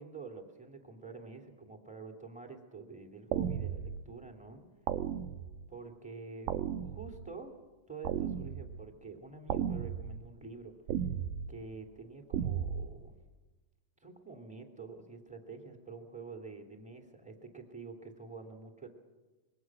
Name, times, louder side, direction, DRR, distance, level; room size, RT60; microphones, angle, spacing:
voice 1, 0.0-4.6 5.7-6.5 6.8-7.5 7.9-10.7 11.5-13.1 14.0-18.9, right 4 dB, ahead, 3 dB, 2.2 m, -47 dB
sound 1, 3.3-4.1 4.9-5.7 6.5-7.3 8.1-8.9 9.5-10.2 10.9-11.5 12.3-12.9, right 9 dB, 75° right, 2.4 m, -35 dB
26.0 x 22.5 x 6.2 m, 1.2 s
omnidirectional pair, 4.1 m